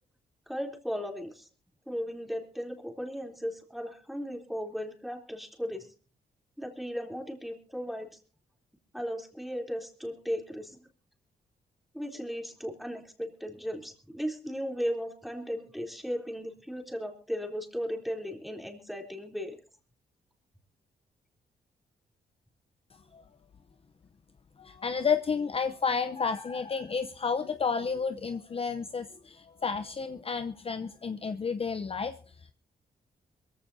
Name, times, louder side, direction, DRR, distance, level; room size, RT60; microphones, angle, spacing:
voice 1, 0.5-1.5 1.9-5.9 6.6-8.1 8.9-10.9 11.9-19.6, equal, ahead, 2 dB, 3.4 m, -36 dB
voice 2, 22.9-23.2 24.6-32.5, left 5 dB, 35° left, 10 dB, 0.7 m, -31 dB
22.5 x 15.0 x 2.7 m, 0.39 s
cardioid pair, 85°, 17 cm